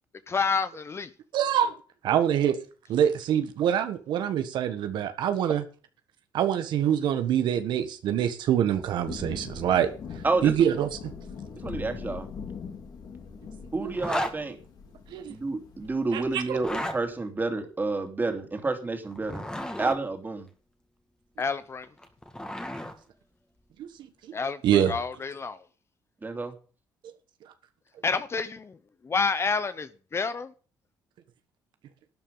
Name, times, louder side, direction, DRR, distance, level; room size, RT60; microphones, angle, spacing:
voice 1, 0.3-1.1 21.4-21.9 24.3-25.6 28.0-28.8 29.0-30.5, left 4 dB, 35° left, 13 dB, 1.0 m, -29 dB
voice 2, 1.3-1.7 2.0-2.6 2.9-5.6 6.3-9.9 10.4-11.1 13.8-13.9 15.1-15.3 16.1-16.6 23.8-23.9 24.3-24.4 24.6-24.9, right 10 dB, 75° right, 9 dB, 1.3 m, -25 dB
Thunder / Rain, 8.5-17.1, left 5 dB, 55° left, 3.4 m, -42 dB
voice 3, 11.6-12.3 13.7-14.6 15.3-19.5 19.8-20.5 26.2-26.5, right 3 dB, 25° right, 5 dB, 3.0 m, -29 dB
Zipper (clothing), 13.9-14.4 16.5-17.0 19.1-20.0 21.8-22.9, left 1 dB, 10° left, 2.2 m, -33 dB
12.0 x 9.1 x 5.6 m, 0.38 s
cardioid pair, 85°, 8 cm